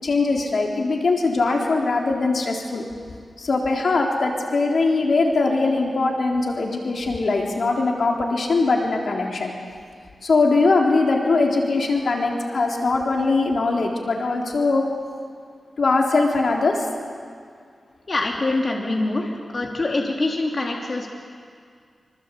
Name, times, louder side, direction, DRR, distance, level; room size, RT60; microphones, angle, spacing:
voice 1, 0.0-2.8 3.4-9.5 10.2-14.8 15.8-16.9, left 3 dB, 70° left, 0 dB, 3.7 m, -21 dB
voice 2, 18.1-21.1, left 2 dB, 45° left, 0 dB, 3.3 m, -24 dB
26.0 x 26.0 x 8.4 m, 2.1 s
wide cardioid pair, 100°, 0 cm